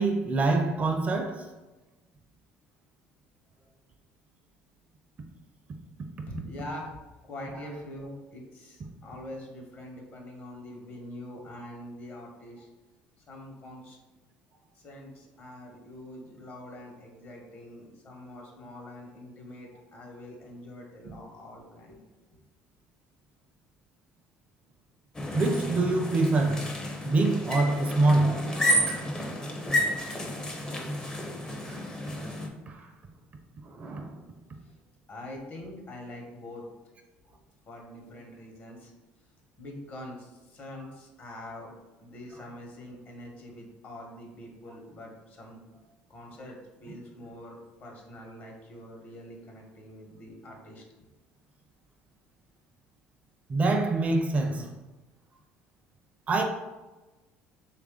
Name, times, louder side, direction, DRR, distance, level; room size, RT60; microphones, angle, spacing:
voice 1, 0.0-1.5 25.3-26.7 27.1-29.9 31.6-31.8 32.7-32.9 33.6-34.2 53.5-54.7 56.3-56.4, right 2 dB, 35° right, 0.4 m, -26 dB
voice 2, 6.3-12.7 13.3-14.0 14.7-22.0 34.6-34.7 35.1-36.6 37.7-38.9 39.6-41.7 42.0-45.6 46.1-50.9, left 1 dB, 45° left, 1.0 m, -44 dB
sound 1, 25.1-32.5, equal, 20° left, 0.5 m, -31 dB
3.1 x 2.5 x 3.6 m
supercardioid pair, 95°, 4 cm